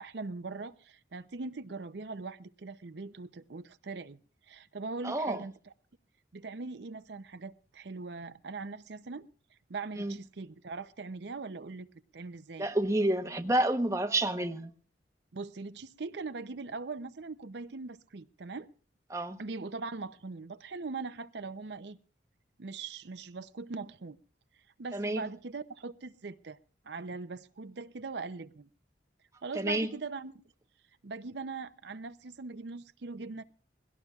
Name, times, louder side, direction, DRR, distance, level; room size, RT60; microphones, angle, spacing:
voice 1, 0.0-4.2 4.5-5.7 6.3-9.2 9.7-11.9 12.1-12.7 15.3-18.7 19.4-22.0 22.6-24.2 24.8-26.6 26.8-28.7 29.4-30.4 31.0-33.4, right 4 dB, 65° right, 0.6 m, -41 dB
voice 2, 5.0-5.4 10.0-10.2 12.6-14.7 19.1-19.4 24.9-25.2 29.6-29.9, right 1 dB, 15° right, 0.9 m, -29 dB
21.5 x 17.0 x 2.4 m
head